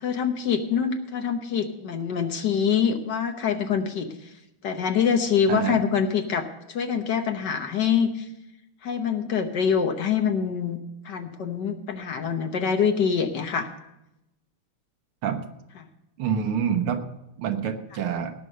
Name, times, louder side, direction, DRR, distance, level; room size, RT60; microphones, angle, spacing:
voice 1, 0.0-4.1 4.6-8.2 8.8-10.8 11.0-13.7, left 7 dB, 60° left, 6 dB, 1.5 m, -25 dB
voice 2, 16.2-17.1 17.4-18.3, right 8 dB, 80° right, 7 dB, 2.0 m, -26 dB
18.0 x 6.2 x 6.2 m, 0.87 s
omnidirectional pair, 2.4 m